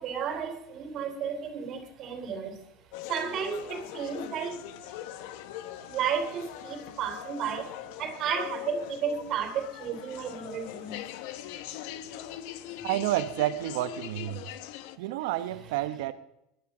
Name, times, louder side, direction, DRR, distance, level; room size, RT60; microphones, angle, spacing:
voice 1, 0.0-2.7 3.1-4.7 5.9-7.7 8.0-11.2 14.9-15.8, right 7 dB, 45° right, 3.0 m, -33 dB
sound 1, 2.9-15.0, left 12 dB, 70° left, 1.0 m, -41 dB
voice 2, 12.8-14.4 15.0-16.1, right 14 dB, 75° right, 1.0 m, -30 dB
19.0 x 11.5 x 6.1 m
supercardioid pair, 115°, 0 cm